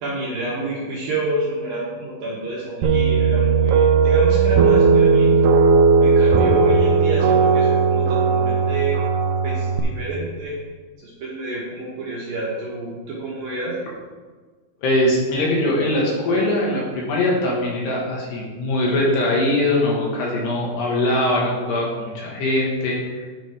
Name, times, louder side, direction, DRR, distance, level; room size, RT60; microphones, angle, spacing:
voice 1, 0.0-5.5 6.0-9.0 9.4-10.6 11.0-13.7, right 2 dB, 65° right, -6 dB, 2.5 m, -28 dB
sound 1, 2.8-9.8, right 5 dB, 90° right, 2.3 m, -16 dB
voice 2, 14.8-23.3, left 1 dB, 65° left, -3 dB, 3.3 m, -21 dB
10.5 x 5.1 x 4.9 m, 1.4 s
omnidirectional pair, 5.7 m